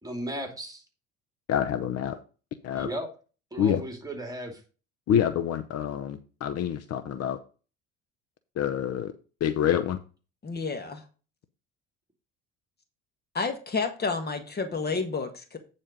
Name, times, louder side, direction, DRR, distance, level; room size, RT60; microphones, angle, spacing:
voice 1, 0.0-0.8 2.7-3.1 3.5-4.6, right 1 dB, 10° right, 4 dB, 2.8 m, -35 dB
voice 2, 1.5-2.2 2.6-2.9 3.6-3.8 5.1-7.4 8.6-9.1 9.4-10.0, left 9 dB, 55° left, 12 dB, 0.7 m, -27 dB
voice 3, 10.4-11.1 13.3-15.6, left 4 dB, 35° left, 7 dB, 1.6 m, -30 dB
9.1 x 4.3 x 5.1 m, 0.34 s
supercardioid pair, 85°, 30 cm